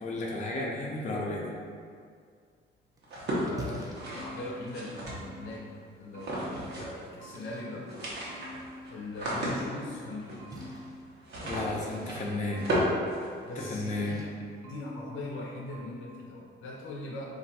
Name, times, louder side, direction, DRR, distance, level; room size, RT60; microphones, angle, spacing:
voice 1, 0.0-1.5 11.4-12.7 13.6-14.2, left 2 dB, 40° left, -3 dB, 0.6 m, -33 dB
Splash splatter, 2.5-15.5, right 1 dB, 20° right, 0.5 m, -50 dB
sound 1, 3.0-5.5 6.1-7.1 7.3-7.4 7.7-13.9, equal, 60° right, 0.9 m, -35 dB
voice 2, 3.2-3.9 4.1-7.9 8.9-10.4 13.4-14.3 14.6-17.2, left 2 dB, 80° left, -3 dB, 0.6 m, -40 dB
sound 2, 4.0-5.7 6.1-7.8 8.3-9.9 10.4-12.0 12.5-14.2 14.6-15.5 15.7-16.3, equal, 90° right, 0.6 m, -48 dB
2.4 x 2.2 x 4.0 m, 2.1 s
cardioid pair, 90°, 20 cm